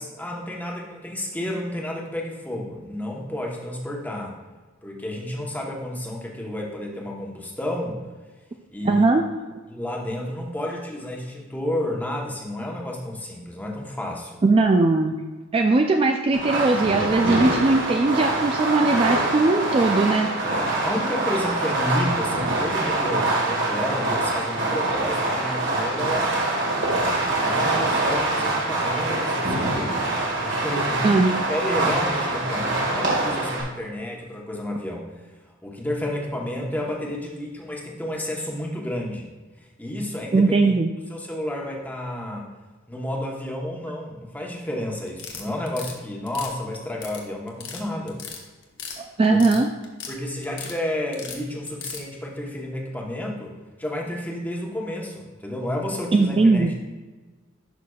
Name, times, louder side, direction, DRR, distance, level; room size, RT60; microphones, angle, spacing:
voice 1, 0.0-4.4 4.8-8.0 8.7-9.1 9.7-14.4 20.4-26.5 27.4-30.0 30.4-31.2 31.5-35.1 35.6-39.3 39.8-40.7 41.1-42.5 42.9-48.2 49.3-49.4 50.1-56.7, left 1 dB, 10° left, -1 dB, 1.0 m, -31 dB
voice 2, 8.8-9.2 14.4-15.2 15.5-20.3 31.0-31.3 40.3-40.9 49.0-49.7 56.1-56.7, right 3 dB, 25° right, 4 dB, 0.3 m, -19 dB
Fireworks, 16.3-33.6, right 2 dB, 60° right, 1.8 m, -24 dB
sound 1, 45.1-45.9 46.3-47.2 47.5-47.8 48.1-49.0 49.2-50.1 50.4-50.8 51.1-52.0, left 6 dB, 60° left, 1.1 m, -36 dB
11.0 x 5.8 x 2.4 m, 1.3 s
head